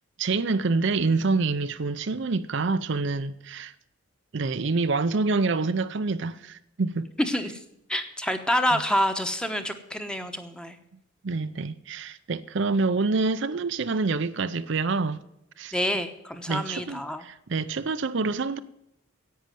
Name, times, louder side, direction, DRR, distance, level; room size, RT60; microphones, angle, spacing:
voice 1, 0.2-3.7 4.3-7.1 8.7-8.8 11.2-15.2 15.6-15.7 16.5-18.6, right 3 dB, 60° right, 0.5 m, -27 dB
voice 2, 7.2-7.6 7.9-10.8 15.7-17.2, equal, 5° left, 1.0 m, -27 dB
10.5 x 8.7 x 9.2 m
head